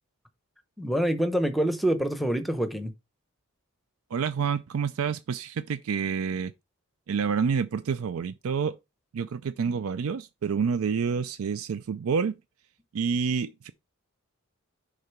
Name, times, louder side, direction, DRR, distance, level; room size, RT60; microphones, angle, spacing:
voice 1, 0.8-2.9, right 1 dB, ahead, 0.7 m, -26 dB
voice 2, 4.1-6.5 7.1-8.7 9.1-12.4 12.9-13.7, right 6 dB, 85° right, 0.4 m, -28 dB
6.6 x 3.8 x 5.8 m
head